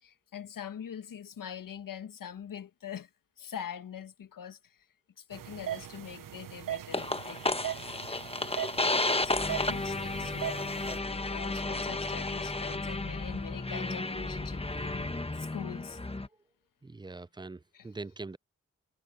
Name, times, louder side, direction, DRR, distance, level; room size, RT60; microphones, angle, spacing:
voice 1, 0.0-3.1 3.4-4.8 5.2-7.4 8.9-10.7 11.0-16.0 17.7-17.9, left 8 dB, 75° left, 1.6 m, -43 dB
sound 1, 5.3-11.0, right 11 dB, 75° right, 1.2 m, -40 dB
sound 2, 6.9-16.3, left 2 dB, 15° left, 1.3 m, -33 dB
voice 2, 16.8-18.4, right 3 dB, 15° right, 0.5 m, -42 dB
supercardioid pair, 40°, 33 cm